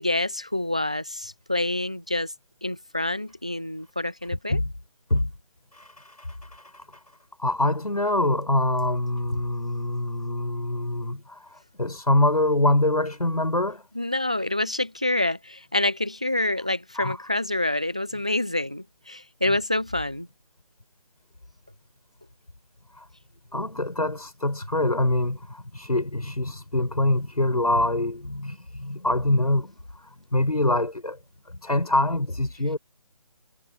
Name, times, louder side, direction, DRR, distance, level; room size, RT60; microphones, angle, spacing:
voice 1, 0.0-2.3 2.6-4.6 9.3-9.4 14.0-20.3, left 1 dB, 10° right, 0.3 m, -27 dB
voice 2, 5.7-6.8 7.4-13.8 17.0-17.2 23.0-23.1 23.5-31.2 31.5-32.8, left 1 dB, 90° left, 5.9 m, -25 dB
figure-of-eight pair, 155°, 19 cm